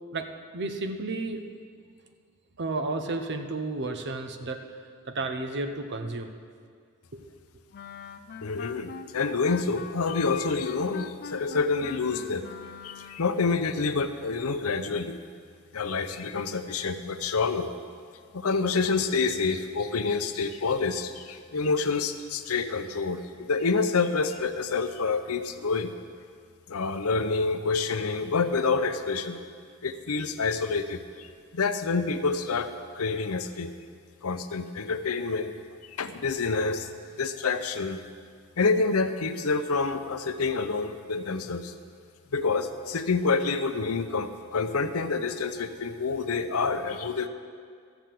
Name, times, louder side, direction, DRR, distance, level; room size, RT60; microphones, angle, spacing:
voice 1, 0.1-1.5 2.6-4.6 5.1-6.3 7.1-7.3, right 2 dB, 55° right, 7 dB, 0.9 m, -32 dB
Wind instrument woodwind instrument, 7.7-13.4, left 6 dB, 45° left, 0.4 m, -42 dB
voice 2, 8.4-12.5 12.8-15.2 15.7-17.7 18.3-25.9 26.7-29.4 29.8-33.7 34.2-35.5 36.0-36.9 37.2-38.0 38.6-41.7 42.3-47.3, left 4 dB, 85° left, 9 dB, 0.7 m, -28 dB
13.5 x 7.0 x 7.6 m, 2.1 s
head